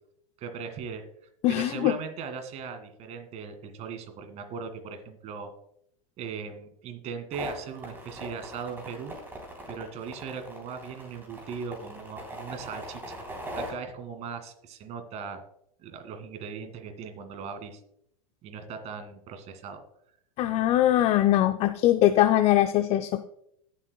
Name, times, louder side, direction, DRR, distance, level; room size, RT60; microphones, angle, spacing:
voice 1, 0.4-1.0 1.5-5.5 6.2-9.1 9.7-13.3 13.5-15.4 15.8-17.8 18.4-19.8, right 6 dB, 40° right, 7 dB, 2.1 m, -39 dB
voice 2, 1.4-1.9 20.4-23.2, left 13 dB, 35° left, 9 dB, 0.5 m, -22 dB
sound 1, 7.3-13.7, right 1 dB, 10° right, 3.4 m, -40 dB
20.5 x 7.4 x 2.3 m, 0.73 s
hypercardioid pair, 115°, 18 cm